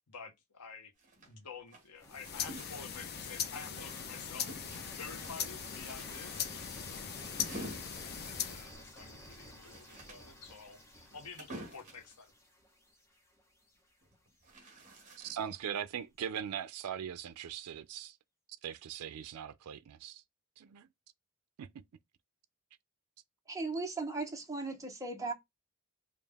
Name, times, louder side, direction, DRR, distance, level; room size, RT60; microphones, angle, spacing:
voice 1, 0.1-0.9 1.3-12.3, left 5 dB, 90° left, 1.0 m, -50 dB
sound 1, 1.0-4.1 4.5-12.1 14.0-15.6, right 1 dB, 35° right, 1.7 m, -50 dB
sound 2, 2.0-8.7, left 8 dB, 45° left, 0.6 m, -40 dB
sound 3, 2.0-13.9, equal, 15° left, 1.2 m, -53 dB
voice 2, 15.2-18.2 18.6-20.2 20.6-20.9 21.6-21.7, right 9 dB, 85° right, 0.4 m, -40 dB
voice 3, 23.5-25.3, right 3 dB, 15° right, 0.9 m, -37 dB
5.0 x 2.3 x 3.4 m
head